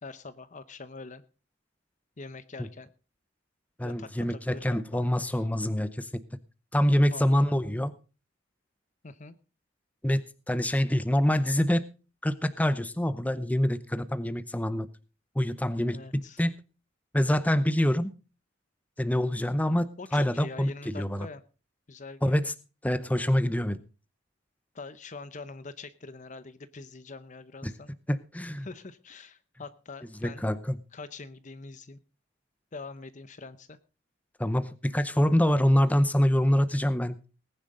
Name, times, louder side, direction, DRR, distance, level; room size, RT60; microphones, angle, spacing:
voice 1, 0.0-1.2 2.2-2.9 3.8-5.0 7.1-7.5 9.0-9.4 15.9-16.4 20.0-21.4 21.9-22.5 24.7-27.9 28.6-30.5 30.9-32.0 32.7-33.8, left 3 dB, 40° left, 14 dB, 0.7 m, -44 dB
voice 2, 3.8-6.2 6.7-7.9 10.0-11.8 12.2-14.9 15.4-16.5 17.1-18.1 19.0-21.3 22.2-22.5 22.8-23.8 27.6-27.7 28.1-28.7 30.2-30.8 34.4-37.2, equal, 10° left, 13 dB, 0.7 m, -25 dB
19.0 x 10.0 x 3.8 m, 0.35 s
head